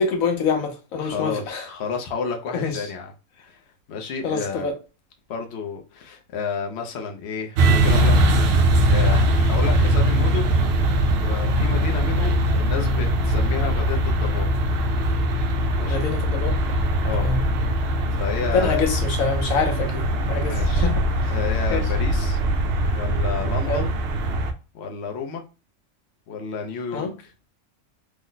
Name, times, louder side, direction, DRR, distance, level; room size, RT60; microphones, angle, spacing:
voice 1, 0.0-1.6 2.5-2.7 4.2-4.7 15.8-16.5 17.2-17.4 18.5-21.3 21.7-21.8 23.7-23.8 26.9-27.1, left 4 dB, 90° left, 1.3 m, -25 dB
voice 2, 1.0-3.1 3.4-3.6 3.9-4.7 5.3-10.5 11.2-14.5 15.8-16.0 17.0-17.3 18.1-18.8 20.4-20.9 21.3-22.4 22.9-23.9 24.7-25.4 26.3-27.3, left 5 dB, 60° left, 0.9 m, -31 dB
sound 1, 7.6-24.5, right 1 dB, 60° right, 0.7 m, -21 dB
3.1 x 2.1 x 3.8 m
omnidirectional pair, 1.4 m